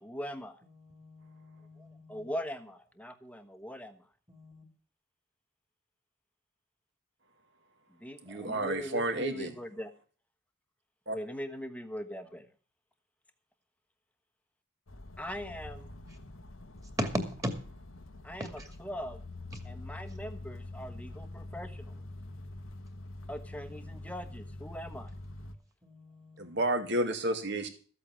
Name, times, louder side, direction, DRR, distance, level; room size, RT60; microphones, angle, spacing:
voice 1, 0.0-0.6 2.1-4.0 8.0-9.9 11.1-12.5 15.2-15.9 18.2-19.2 19.6-22.0 23.3-25.1, equal, 5° left, 8 dB, 1.1 m, -41 dB
voice 2, 0.7-2.2 4.3-4.6 17.0-17.1 17.4-17.5 18.6-18.7 21.0-21.8 23.5-24.1 25.8-26.6, equal, 15° right, 7 dB, 2.3 m, -40 dB
voice 3, 8.2-9.5 11.1-11.2 26.4-27.7, right 1 dB, 60° right, 6 dB, 2.2 m, -31 dB
sound 1, 14.9-25.5, left 2 dB, 85° left, 1.3 m, -45 dB
14.0 x 8.5 x 6.2 m, 0.41 s
head